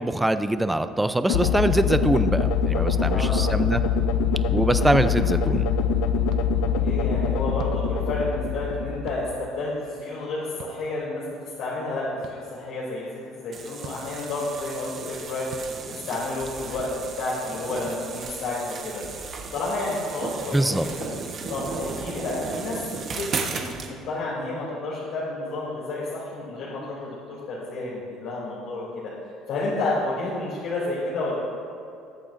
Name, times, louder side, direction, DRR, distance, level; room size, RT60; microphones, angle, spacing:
voice 1, 0.0-3.8 4.5-5.7 20.5-20.9, right 1 dB, 5° right, 10 dB, 0.4 m, -23 dB
sound 1, 1.3-9.5, left 5 dB, 85° left, 0.5 m, -24 dB
voice 2, 3.0-3.4 6.8-15.5 15.9-16.9 17.2-19.0 19.5-21.1 21.5-22.8 23.1-28.9 29.5-31.3, left 2 dB, 60° left, -8 dB, 3.0 m, -30 dB
sound 2, 6.3-6.4 7.6-7.8 9.1-9.2 10.6-10.8 12.2-12.4 13.8-14.0 15.5-15.7 16.8-16.9 17.9-18.0, right 8 dB, 50° right, 0.6 m, -41 dB
sound 3, 13.5-23.9, right 4 dB, 35° right, 1.2 m, -35 dB
21.5 x 8.7 x 2.6 m, 2.6 s
cardioid pair, 160°, 0 cm